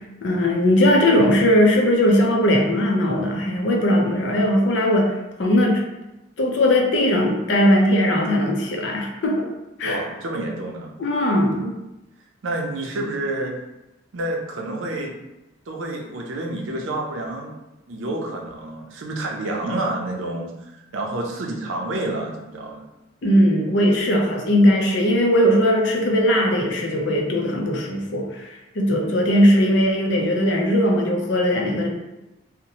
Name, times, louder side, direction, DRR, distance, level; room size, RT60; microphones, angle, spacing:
voice 1, 0.2-5.8 6.4-9.5 9.8-10.0 11.0-11.7 23.2-31.9, equal, 65° left, 0 dB, 0.5 m, -19 dB
voice 2, 9.8-10.9 12.4-13.6 14.1-15.1 15.7-17.5 17.9-22.8, right 2 dB, 80° right, 1 dB, 0.5 m, -29 dB
2.7 x 2.1 x 2.8 m, 0.96 s
head